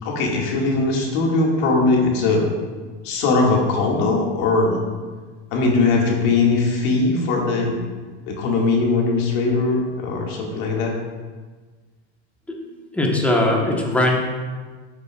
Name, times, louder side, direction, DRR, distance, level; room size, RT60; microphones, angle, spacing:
voice 1, 0.0-2.5 3.0-4.8 5.5-7.8 8.3-10.9, left 3 dB, 55° left, -1 dB, 2.1 m, -20 dB
voice 2, 12.9-14.3, left 1 dB, 5° left, -1 dB, 1.2 m, -20 dB
12.0 x 6.6 x 2.4 m, 1.4 s
supercardioid pair, 135°, 33 cm